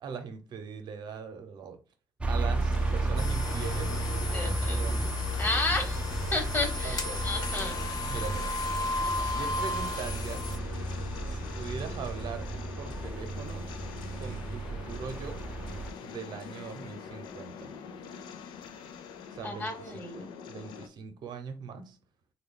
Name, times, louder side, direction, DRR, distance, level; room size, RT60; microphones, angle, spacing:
voice 1, 0.0-1.8 2.3-4.0 4.4-5.1 5.8-6.1 6.8-7.3 8.0-8.5 9.2-10.6 11.3-12.5 12.8-15.4 16.0-17.8 19.3-22.0, right 6 dB, 70° right, 7 dB, 0.7 m, -41 dB
sound 1, 2.2-15.9, right 2 dB, 15° right, 0.4 m, -33 dB
sound 2, 2.5-20.9, left 7 dB, 85° left, 0.4 m, -44 dB
sound 3, 3.2-10.6, left 2 dB, 55° left, 0.8 m, -36 dB
voice 2, 4.3-4.8 5.4-6.0 6.3-7.8 19.4-20.3, left 2 dB, 25° left, 4 dB, 1.1 m, -32 dB
3.3 x 2.3 x 3.7 m, 0.32 s
cardioid pair, 100°, 8 cm